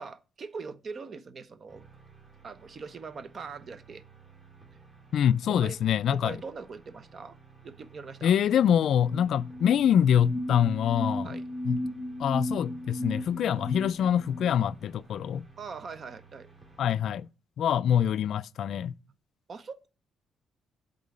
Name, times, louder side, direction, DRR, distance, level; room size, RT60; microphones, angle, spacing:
voice 1, 0.0-1.9 2.4-4.0 5.5-5.8 6.1-7.4 7.6-8.4 9.2-9.4 11.2-11.5 15.6-16.5 19.5-19.9, right 5 dB, 45° right, 0.8 m, -42 dB
sound 1, 1.7-17.3, right 4 dB, 25° right, 2.6 m, -55 dB
voice 2, 5.1-6.4 8.2-11.3 11.6-11.8 12.2-15.4 16.8-17.3 17.6-18.9, left 9 dB, 70° left, 0.3 m, -25 dB
sound 2, 8.5-8.6 8.8-14.6, left 1 dB, 30° left, 0.8 m, -35 dB
8.3 x 3.8 x 6.4 m
cardioid pair, 90°, 0 cm